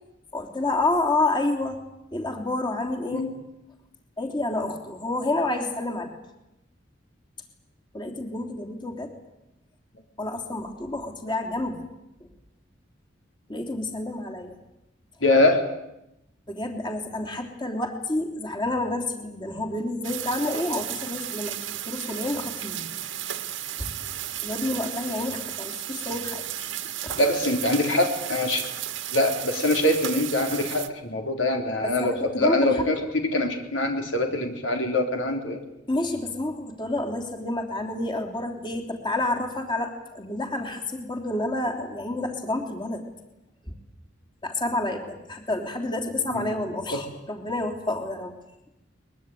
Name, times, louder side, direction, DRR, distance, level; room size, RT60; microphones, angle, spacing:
voice 1, 0.3-1.8 2.1-3.3 4.2-6.1 7.9-9.1 10.2-11.8 13.5-14.5 16.5-21.6 21.9-22.9 23.8-23.9 24.4-26.4 27.0-27.2 31.8-32.9 35.9-43.0 44.4-48.3, left 2 dB, 25° left, 3 dB, 3.3 m, -29 dB
voice 2, 15.2-15.7 27.2-28.7 29.1-35.6 46.3-46.5 46.9-47.0, left 1 dB, 75° left, 4 dB, 3.7 m, -24 dB
sound 1, 20.0-30.9, right 11 dB, 75° right, 1.8 m, -34 dB
23.0 x 22.0 x 9.4 m, 0.88 s
head